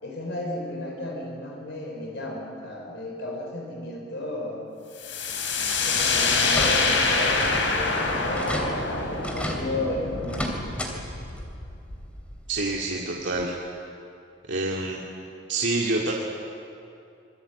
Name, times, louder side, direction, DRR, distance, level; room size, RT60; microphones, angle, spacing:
voice 1, 0.0-4.7 5.8-8.8 9.2-10.5, left 2 dB, 65° left, 0 dB, 5.3 m, -33 dB
sound 1, 5.0-12.6, left 3 dB, 85° left, 4.0 m, -26 dB
sound 2, 6.3-7.0 7.3-7.7 8.0-8.1 8.3-8.7 9.2-9.6 10.2-10.9 11.3-11.4 12.8-12.9 13.4-13.5, equal, 5° left, 3.0 m, -32 dB
voice 2, 12.5-13.5 14.5-15.0 15.5-16.1, right 2 dB, 75° right, -2 dB, 2.5 m, -27 dB
26.5 x 22.5 x 8.5 m, 2.6 s
head